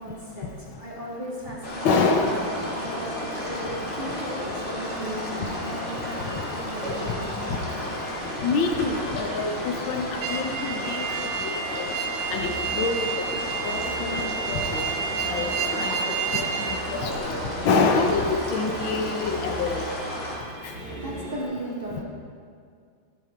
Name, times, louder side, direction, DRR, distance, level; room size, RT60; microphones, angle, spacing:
voice 1, 0.0-8.6 9.8-9.9 11.0-11.4 20.7-22.0, right 1 dB, 25° right, -6 dB, 2.2 m, -37 dB
sound 1, 1.6-20.4, left 1 dB, 35° left, 2.3 m, -33 dB
voice 2, 1.8-2.3 8.4-11.1 11.4-11.8 12.3-13.1 13.6-14.8 15.3-16.0 16.3-17.3 17.6-19.8, left 4 dB, 75° left, 3 dB, 1.6 m, -26 dB
sound 2, 2.1-21.4, right 1 dB, 90° right, 3.3 m, -39 dB
sound 3, 10.2-16.8, right 7 dB, 65° right, 1.3 m, -30 dB
13.5 x 9.1 x 4.5 m, 2.1 s
omnidirectional pair, 2.3 m